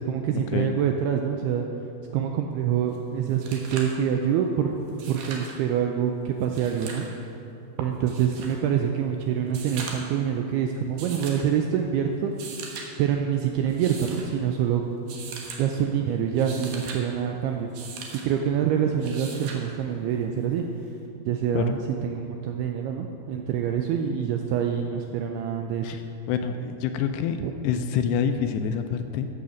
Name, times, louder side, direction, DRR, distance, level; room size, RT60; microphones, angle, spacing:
voice 1, 0.0-1.7 2.1-4.8 5.1-7.0 7.8-12.3 13.0-14.8 15.6-17.7 18.2-20.7 21.3-26.0 27.4-27.5, right 8 dB, 85° right, 3 dB, 2.3 m, -26 dB
sound 1, 2.9-3.0 3.3-4.0 4.9-5.6 6.4-7.1 8.1-8.6 9.5-10.2 11.0-11.5 12.3-12.9 13.7-14.3 15.1-15.6 16.2-17.0 17.7-18.3 19.0-19.6 21.0-21.1, right 5 dB, 65° right, 2.1 m, -39 dB
voice 2, 26.3-27.4 27.6-29.3, left 7 dB, 80° left, 7 dB, 2.6 m, -26 dB
14.5 x 6.9 x 6.3 m, 2.7 s
omnidirectional pair, 5.1 m